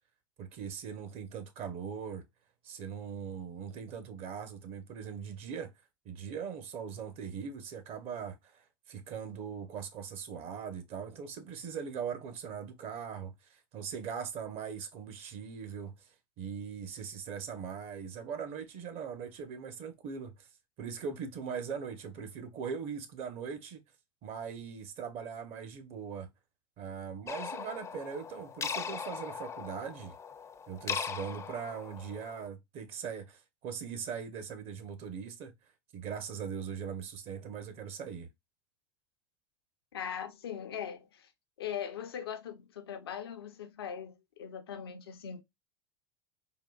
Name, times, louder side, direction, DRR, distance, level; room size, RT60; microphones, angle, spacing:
voice 1, 0.4-2.2 2.6-5.7 6.0-15.9 16.4-20.5 20.8-23.8 24.2-26.3 26.8-30.1 30.7-35.5 35.9-38.3, right 7 dB, 55° right, 0.7 m, -40 dB
sound 1, 27.3-32.5, left 6 dB, 25° left, 0.4 m, -39 dB
voice 2, 39.9-41.3 41.6-45.4, left 8 dB, 90° left, 0.6 m, -40 dB
3.6 x 2.2 x 2.2 m
hypercardioid pair, 90°, 13 cm